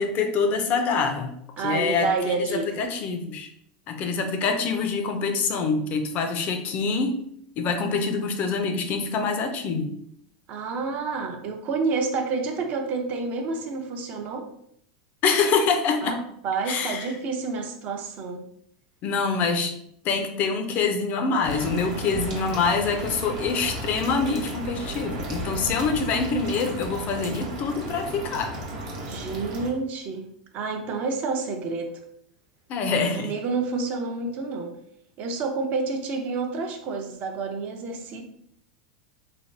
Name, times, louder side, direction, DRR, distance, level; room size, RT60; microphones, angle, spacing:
voice 1, 0.0-3.5 3.9-7.2 7.6-9.9 15.2-16.2 16.7-17.1 19.0-19.8 20.0-28.6 32.7-33.3, left 4 dB, 40° left, 6 dB, 0.4 m, -25 dB
voice 2, 1.6-2.8 10.5-14.5 16.0-16.2 16.4-18.4 29.0-30.3 30.5-31.9 33.2-34.7 35.2-38.2, right 4 dB, 40° right, 4 dB, 0.5 m, -29 dB
sound 1, 21.4-29.7, right 1 dB, 70° right, 1.0 m, -34 dB
3.3 x 2.2 x 2.5 m, 0.70 s
supercardioid pair, 130°, 4 cm